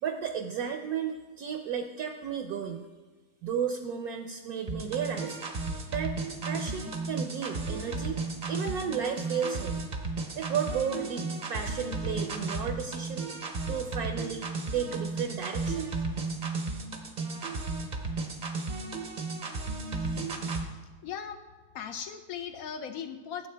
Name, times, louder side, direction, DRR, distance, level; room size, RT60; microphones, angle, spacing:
voice 1, 0.0-2.9 3.4-5.6 5.9-8.2 8.5-9.8 10.3-13.3 13.7-15.9, right 7 dB, 70° right, 5 dB, 1.0 m, -33 dB
sound 1, 4.7-20.7, right 3 dB, 45° right, 0.6 m, -34 dB
voice 2, 20.7-21.4 21.7-23.5, left 7 dB, 70° left, 8 dB, 0.8 m, -38 dB
12.0 x 7.8 x 3.3 m, 1.3 s
omnidirectional pair, 1.9 m